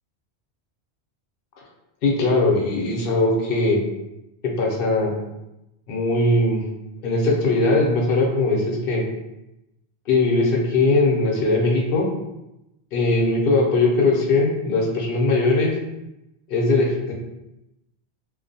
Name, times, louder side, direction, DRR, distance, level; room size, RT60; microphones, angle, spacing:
voice 1, 2.0-3.8 4.6-5.1 5.9-6.7 7.0-9.0 10.1-12.1 12.9-15.7 16.5-17.1, left 2 dB, 65° left, -2 dB, 0.8 m, -20 dB
2.5 x 2.2 x 2.6 m, 0.90 s
omnidirectional pair, 1.1 m